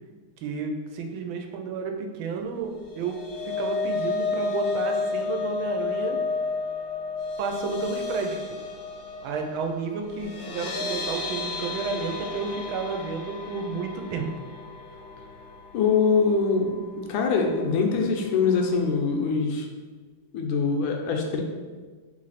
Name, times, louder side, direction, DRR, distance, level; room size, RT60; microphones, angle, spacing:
voice 1, 0.4-3.2 3.5-6.2 7.4-8.6 9.2-14.3, right 4 dB, 85° right, 3 dB, 1.4 m, -31 dB
sound 1, 2.8-17.0 17.4-17.6 17.9-18.0, left 4 dB, 65° left, 0.9 m, -32 dB
voice 2, 15.7-16.8 17.1-19.6 20.3-21.4, left 5 dB, 80° left, 2 dB, 1.4 m, -23 dB
3.4 x 3.2 x 3.9 m, 1.4 s
omnidirectional pair, 2.2 m